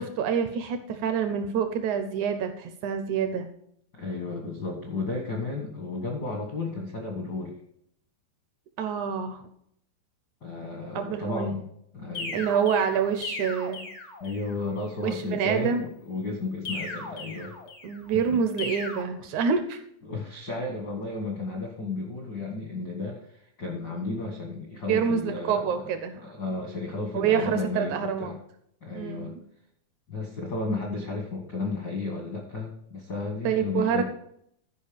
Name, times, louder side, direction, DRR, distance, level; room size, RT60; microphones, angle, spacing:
voice 1, 0.0-3.5 8.8-9.4 11.0-11.5 12.3-13.8 15.0-15.8 17.8-19.8 24.9-26.2 27.1-28.4 28.9-29.3 33.4-34.0, right 7 dB, 75° right, 8 dB, 1.8 m, -27 dB
voice 2, 3.9-7.6 10.4-11.6 11.9-12.4 14.2-17.5 18.1-18.4 20.0-25.9 26.2-28.4 28.8-29.4 30.1-34.0, left 3 dB, 75° left, 1 dB, 0.9 m, -33 dB
sound 1, 12.1-14.6 16.6-18.0 18.6-19.0, left 2 dB, 90° left, 0.6 m, -37 dB
13.0 x 5.1 x 5.1 m, 0.71 s
omnidirectional pair, 4.2 m